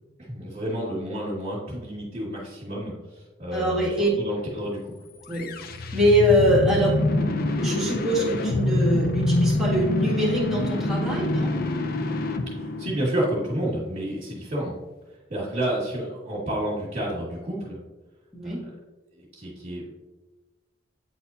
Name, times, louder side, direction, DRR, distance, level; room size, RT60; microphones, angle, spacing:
voice 1, 0.3-4.9 12.6-14.8 15.3-17.8 18.4-18.7 19.1-19.9, right 1 dB, 40° right, -9 dB, 1.9 m, -30 dB
voice 2, 3.5-4.1 5.3-5.5 5.9-6.9 7.6-11.5 18.3-18.6, equal, ahead, -7 dB, 1.8 m, -23 dB
sound 1, 5.3-13.4, left 1 dB, 50° left, 0.5 m, -25 dB
9.4 x 4.2 x 2.7 m, 1.2 s
head